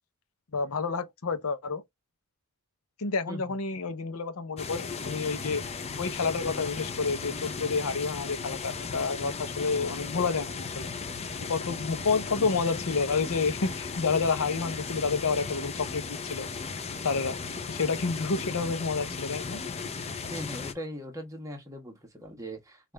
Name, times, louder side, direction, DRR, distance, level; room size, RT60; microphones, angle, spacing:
voice 1, 0.5-1.8 3.0-5.6 6.0-10.9 11.5-16.5 17.0-17.4 17.7-19.6, left 4 dB, 70° left, 0.6 m, -29 dB
sound 1, 4.6-20.7, left 5 dB, 30° left, 0.5 m, -36 dB
voice 2, 20.3-22.9, equal, 15° right, 1.2 m, -40 dB
5.4 x 2.4 x 3.3 m
head